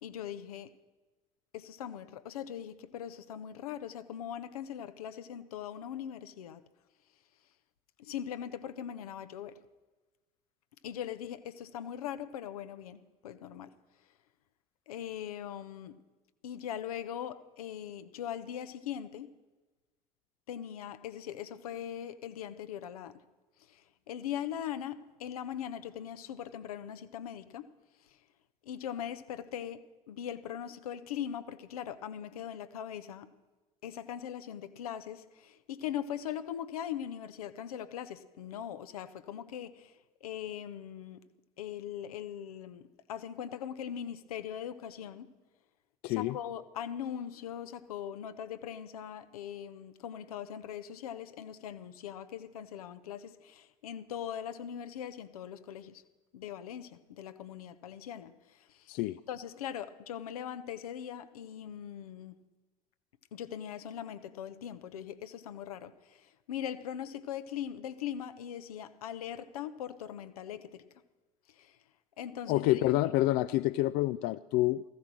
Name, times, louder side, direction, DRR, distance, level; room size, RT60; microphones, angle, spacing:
voice 1, 0.0-0.7 1.5-6.6 8.0-9.6 10.8-13.7 14.9-16.0 16.4-19.3 20.5-23.2 23.6-27.7 28.0-28.2 28.6-33.3 33.8-41.2 41.6-42.8 43.1-45.3 46.1-56.0 56.3-58.9 59.3-62.4 63.3-70.8 71.5-71.8 72.2-73.0, left 9 dB, 75° left, 0.8 m, -41 dB
voice 2, 46.0-46.4 58.9-59.2 72.5-74.8, left 16 dB, 55° left, 0.4 m, -28 dB
15.0 x 14.5 x 6.1 m
figure-of-eight pair, 60°, 19 cm